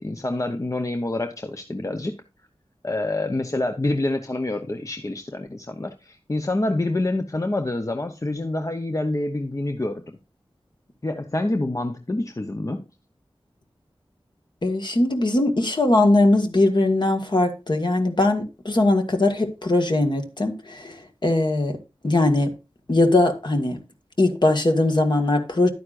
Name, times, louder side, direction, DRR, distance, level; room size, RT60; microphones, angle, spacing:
voice 1, 0.0-2.2 2.8-10.2 11.0-12.8, left 2 dB, 35° left, 0.8 m, -27 dB
voice 2, 14.6-20.9 21.2-21.8 22.0-22.5 22.9-23.8 24.2-25.7, left 2 dB, 50° left, 1.7 m, -20 dB
11.5 x 9.3 x 2.5 m
wide cardioid pair, 55°, 10 cm